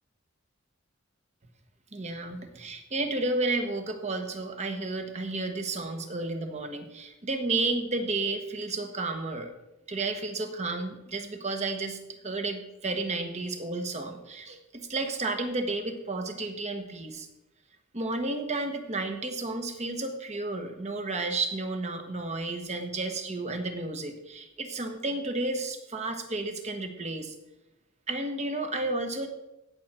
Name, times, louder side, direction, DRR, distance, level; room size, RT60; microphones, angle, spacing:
voice 1, 1.9-9.5 9.9-17.3 17.9-27.3 28.1-29.3, right 2 dB, 35° right, 6 dB, 1.3 m, -32 dB
17.0 x 6.5 x 4.4 m, 0.96 s
head